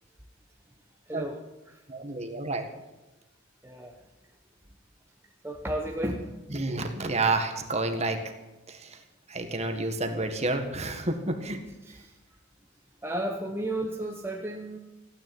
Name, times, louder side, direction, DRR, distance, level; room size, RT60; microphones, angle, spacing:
voice 1, 1.1-1.4 1.7-1.8 3.6-4.0 5.4-6.4 11.8-12.1 13.0-14.8, right 1 dB, 10° right, 1 dB, 1.0 m, -33 dB
voice 2, 1.9-2.7 6.5-8.2 8.7-9.0 9.3-11.6, right 2 dB, 30° right, 5 dB, 1.7 m, -29 dB
15.5 x 9.6 x 9.2 m, 1.1 s
head